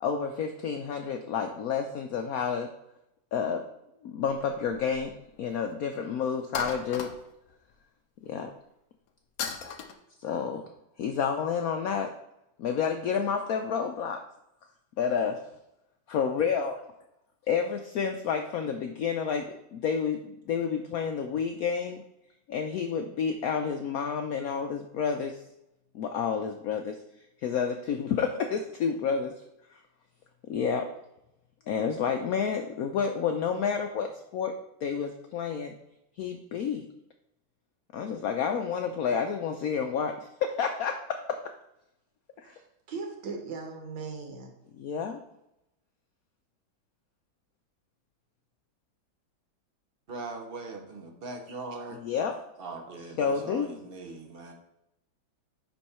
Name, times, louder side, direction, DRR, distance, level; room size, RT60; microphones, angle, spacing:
voice 1, 0.0-2.7 3.3-3.6 4.0-5.1 5.4-7.1 8.2-8.5 10.2-10.6 11.0-12.1 12.6-14.2 15.0-15.4 16.1-16.7 17.5-22.0 22.5-25.4 25.9-27.0 27.4-29.3 30.5-30.9 31.7-34.5 34.8-35.7 36.2-36.9 37.9-41.4 42.4-42.5 44.8-45.2 52.0-52.4 53.2-53.8, left 6 dB, 85° left, 5 dB, 0.8 m, -30 dB
sound 1, 4.3-5.2 5.5-5.6 6.5-7.5 9.4-9.9, left 6 dB, 60° left, 1.0 m, -36 dB
voice 2, 42.4-44.5, right 4 dB, 70° right, 2 dB, 2.0 m, -39 dB
voice 3, 50.1-52.0 52.6-54.5, right 3 dB, 45° right, 3 dB, 0.7 m, -40 dB
10.0 x 3.5 x 4.2 m, 0.85 s
omnidirectional pair, 2.1 m